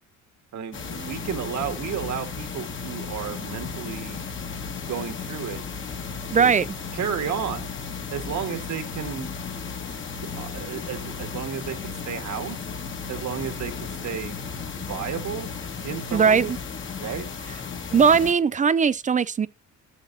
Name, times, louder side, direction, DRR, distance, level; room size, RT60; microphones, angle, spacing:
voice 1, 0.5-4.2 4.9-5.6 6.4-6.5 6.9-7.7 8.1-9.3 10.4-12.6 13.1-14.4 14.8-15.6 15.8-16.5 17.0-17.3, right 8 dB, 60° right, 1.8 m, -32 dB
sound 1, 0.7-18.3, left 5 dB, 40° left, 1.6 m, -34 dB
voice 2, 6.3-6.7 16.1-16.5 17.9-19.5, right 6 dB, 25° right, 0.4 m, -19 dB
14.0 x 7.5 x 2.8 m
cardioid pair, 115°, 31 cm